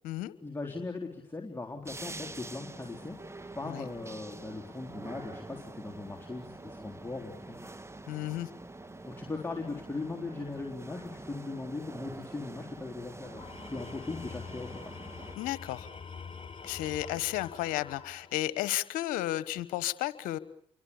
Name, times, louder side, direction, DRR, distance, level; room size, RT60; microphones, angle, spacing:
voice 1, 0.4-3.2 3.6-7.6 9.0-14.7, left 3 dB, 15° left, 0 dB, 3.8 m, -39 dB
sound 1, 1.8-15.4, right 2 dB, 20° right, 1.8 m, -46 dB
voice 2, 8.1-8.5 15.4-15.9 16.6-20.4, left 15 dB, 75° left, 16 dB, 1.2 m, -33 dB
Tools, 13.2-18.6, left 5 dB, 35° left, 5.2 m, -45 dB
29.5 x 24.0 x 7.1 m, 0.64 s
hypercardioid pair, 45°, 14 cm